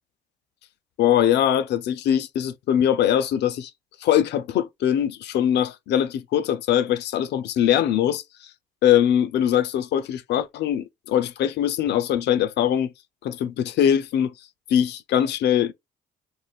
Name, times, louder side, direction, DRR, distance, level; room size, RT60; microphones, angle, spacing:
voice 1, 1.0-3.7 4.0-8.5 8.8-12.9 13.2-15.7, left 10 dB, 65° left, 0.5 m, -22 dB
2.6 x 2.1 x 3.3 m
supercardioid pair, 60°, 20 cm